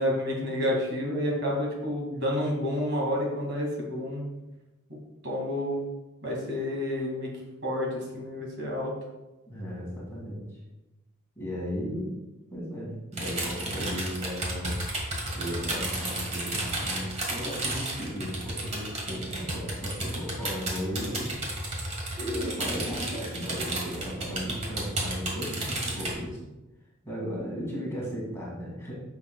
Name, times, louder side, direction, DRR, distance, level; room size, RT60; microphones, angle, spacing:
voice 1, 0.0-4.2 4.9-5.0 5.2-5.9 6.2-7.3 7.6-8.9, left 1 dB, 55° right, -2 dB, 2.2 m, -29 dB
voice 2, 9.5-10.6 11.4-12.1 12.5-14.8 15.3-21.3 22.2-26.4 27.0-28.9, equal, 10° left, -5 dB, 2.1 m, -35 dB
sound 1, 13.1-26.1, right 1 dB, 30° right, 1.6 m, -33 dB
10.0 x 6.0 x 2.3 m, 1.0 s
head